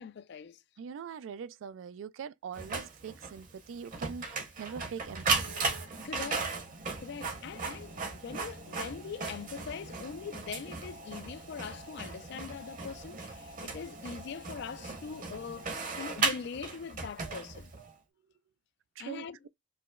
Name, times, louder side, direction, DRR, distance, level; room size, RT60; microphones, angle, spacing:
voice 1, 0.0-0.6 6.0-6.5 7.0-17.7 19.0-19.4, left 6 dB, 60° left, 0.4 m, -42 dB
voice 2, 0.8-5.6 19.0-19.5, right 7 dB, 80° right, 0.3 m, -43 dB
Printer, 2.5-17.9, right 4 dB, 45° right, 0.8 m, -37 dB
4.8 x 2.0 x 2.3 m
head